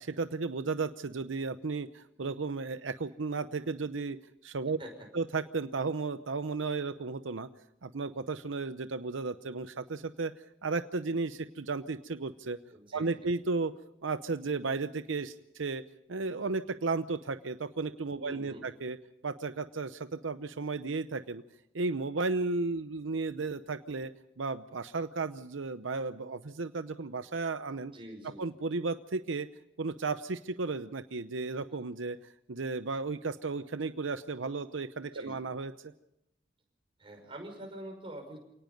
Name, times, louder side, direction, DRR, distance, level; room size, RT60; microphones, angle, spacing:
voice 1, 0.0-4.8 5.1-7.5 7.8-10.3 10.6-12.6 12.9-13.7 14.0-15.8 16.1-19.0 19.2-21.4 21.7-24.1 24.4-27.9 28.4-29.5 29.8-32.2 32.5-35.7, right 3 dB, 80° right, 11 dB, 0.7 m, -34 dB
voice 2, 12.7-13.1 18.2-18.7 27.9-28.4 35.1-35.4 37.0-38.4, right 1 dB, 25° right, 2 dB, 6.0 m, -45 dB
28.0 x 18.5 x 5.3 m, 0.82 s
head